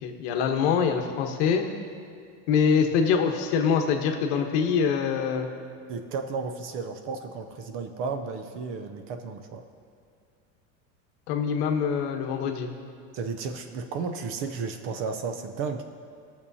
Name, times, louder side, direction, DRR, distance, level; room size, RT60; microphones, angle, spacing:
voice 1, 0.0-1.6 2.5-5.5 11.3-12.7, left 6 dB, 60° left, 4 dB, 1.1 m, -24 dB
voice 2, 5.9-9.6 13.1-15.8, right 5 dB, 35° right, 7 dB, 0.5 m, -33 dB
18.5 x 6.9 x 2.7 m, 2.3 s
supercardioid pair, 160°, 37 cm